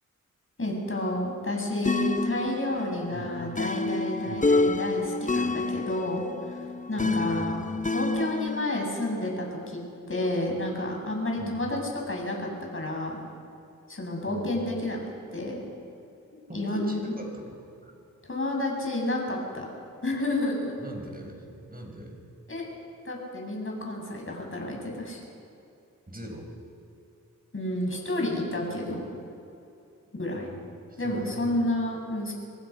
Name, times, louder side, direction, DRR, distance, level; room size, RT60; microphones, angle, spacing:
voice 1, 0.6-7.6 7.9-9.8 10.1-11.8 12.1-13.2 13.9-15.0 15.3-15.6 16.5-17.1 18.3-19.7 20.0-20.7 22.5-22.6 23.0-25.2 27.5-29.0 30.1-30.5 31.0-32.3, left 1 dB, 40° left, 0 dB, 7.0 m, -30 dB
sound 1, 1.8-8.7, left 3 dB, 25° left, 0.8 m, -28 dB
voice 2, 7.0-7.6 11.4-11.7 14.3-14.5 16.5-17.9 20.8-22.2 26.1-26.5 30.3-30.5 30.9-31.6, equal, 25° right, 1 dB, 6.4 m, -40 dB
26.0 x 18.0 x 5.9 m, 2.7 s
cardioid pair, 50°, 33 cm